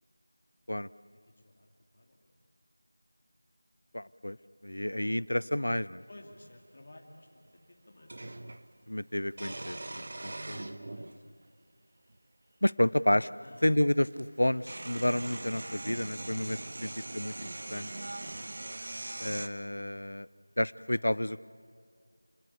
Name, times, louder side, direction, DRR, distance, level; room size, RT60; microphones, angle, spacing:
voice 1, 1.3-1.7 1.9-2.3 6.1-8.3 10.9-11.3 13.4-13.7 16.7-17.0 18.0-19.1 20.8-20.9, left 1 dB, 30° left, 1 dB, 2.9 m, -56 dB
voice 2, 3.9-4.4 4.6-6.0 8.9-10.8 12.6-13.3 13.6-17.9 19.2-20.3 20.6-21.5, left 1 dB, 80° left, 19 dB, 0.7 m, -30 dB
sound 1, 6.4-6.5 8.1-8.6 9.3-11.2 12.1-12.2 13.7-13.8 14.1-19.5, right 2 dB, 35° right, 1.0 m, -41 dB
28.5 x 19.5 x 8.5 m, 2.1 s
figure-of-eight pair, 175°, 0 cm